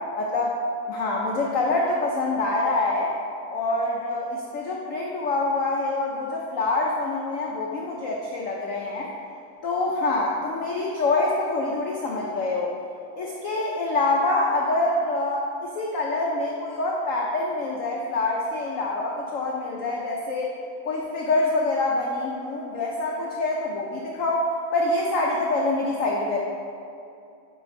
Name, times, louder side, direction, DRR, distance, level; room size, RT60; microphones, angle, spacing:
voice 1, 0.2-0.5 0.9-3.1 3.5-9.1 9.6-12.7 13.2-20.5 20.8-26.4, left 2 dB, 90° left, -2 dB, 0.7 m, -25 dB
9.4 x 4.7 x 2.6 m, 2.6 s
omnidirectional pair, 2.1 m